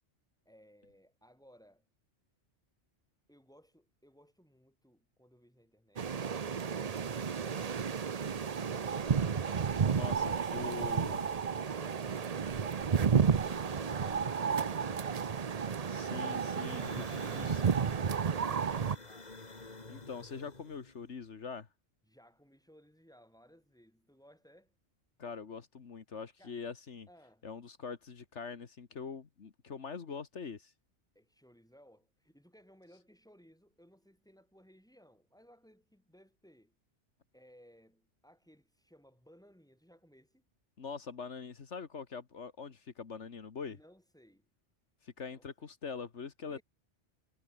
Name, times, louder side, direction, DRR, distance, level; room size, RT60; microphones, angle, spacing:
voice 1, 0.4-1.8 3.3-9.1 16.8-19.5 22.1-24.7 26.4-26.6 27.1-27.5 31.1-36.8 37.3-40.4 43.6-44.5 45.2-45.7 46.5-46.6, equal, 5° left, 7.8 m, -62 dB
sound 1, 6.0-19.0, right 6 dB, 40° right, 0.7 m, -32 dB
sound 2, 8.7-9.9 11.7-12.6 12.9-15.5 16.3-21.1, left 3 dB, 35° left, 2.2 m, -53 dB
voice 2, 9.9-11.2 15.9-17.6 19.9-21.7 25.2-27.1 27.4-30.7 40.8-43.8 45.0-46.6, left 5 dB, 75° left, 1.8 m, -43 dB
omnidirectional pair, 1.2 m